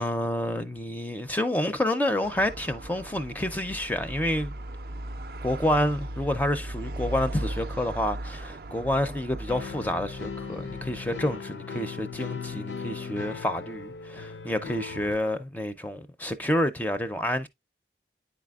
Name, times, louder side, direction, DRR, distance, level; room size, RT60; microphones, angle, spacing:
voice 1, 0.0-4.5 5.4-17.5, left 1 dB, 10° left, 0.4 m, -28 dB
sound 1, 2.2-11.4, right 1 dB, 55° right, 0.4 m, -38 dB
sound 2, 9.5-15.2, left 5 dB, 90° left, 0.6 m, -38 dB
10.0 x 4.2 x 2.3 m
head